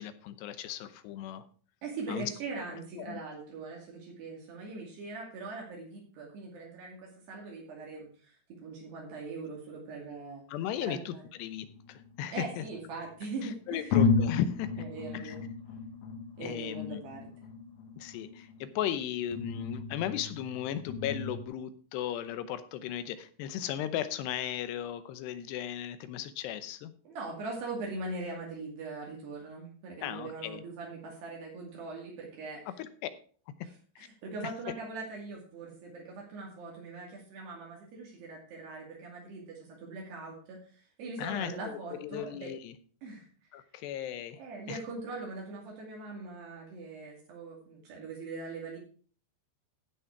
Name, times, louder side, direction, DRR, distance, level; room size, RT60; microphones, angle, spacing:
voice 1, 0.0-1.5 2.1-2.3 3.0-3.2 10.5-12.6 13.4-14.8 15.1-15.4 16.4-17.0 18.0-26.9 30.0-30.6 32.8-33.1 34.0-34.1 41.2-42.7 43.5-44.4 44.7-44.8, left 10 dB, 80° left, 12 dB, 2.8 m, -36 dB
voice 2, 1.8-8.4 8.6-10.4 10.8-11.2 12.3-14.1 14.8-15.4 16.4-17.3 27.0-32.7 34.0-42.5 43.0-43.3 43.5-43.6 44.4-48.8, right 3 dB, 70° right, -2 dB, 4.5 m, -41 dB
sound 1, 11.5-12.8 13.4-13.5 13.9-21.4, left 4 dB, 60° left, 2.7 m, -33 dB
15.5 x 6.3 x 4.6 m, 0.43 s
omnidirectional pair, 5.1 m